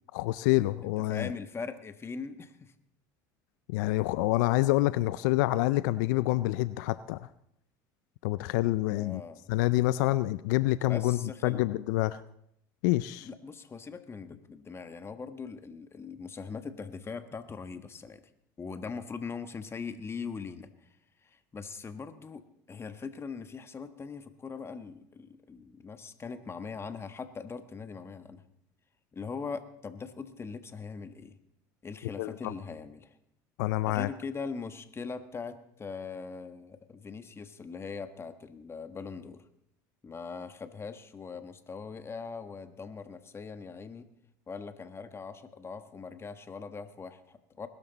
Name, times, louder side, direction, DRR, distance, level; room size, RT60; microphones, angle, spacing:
voice 1, 0.1-1.3 3.7-7.3 8.2-9.2 9.5-12.2 12.8-13.3 32.2-32.5 33.6-34.1, left 18 dB, 75° left, 16 dB, 0.4 m, -27 dB
voice 2, 0.8-2.7 8.9-9.5 10.9-11.6 13.2-18.2 18.6-20.7 21.2-22.4 22.7-28.4 29.1-31.4 31.8-33.1 33.9-39.4 40.0-44.1 44.5-47.7, left 5 dB, 25° left, 10 dB, 1.4 m, -41 dB
20.5 x 12.0 x 4.1 m, 0.74 s
hypercardioid pair, 85°, 10 cm